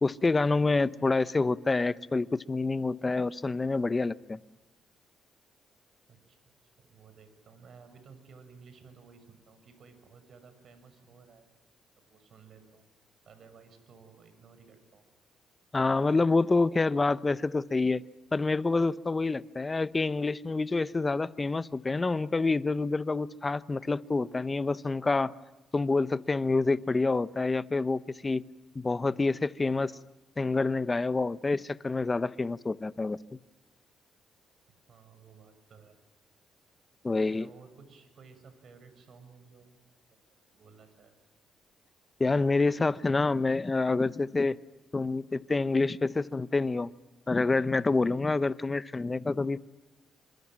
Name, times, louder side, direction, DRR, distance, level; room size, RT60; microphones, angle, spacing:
voice 1, 0.0-4.4 15.7-18.0 18.3-25.3 25.7-28.4 28.7-30.0 30.4-33.2 37.0-37.5 42.2-44.6 44.9-46.9 47.3-49.6, left 3 dB, 25° left, 15 dB, 0.9 m, -27 dB
voice 2, 6.1-11.5 12.0-12.8 13.2-15.0 34.9-36.0 37.1-39.7 40.1-40.2 40.5-41.1, right 5 dB, 55° right, 9 dB, 6.2 m, -55 dB
28.0 x 26.5 x 7.6 m, 1.1 s
cardioid pair, 90°, 0 cm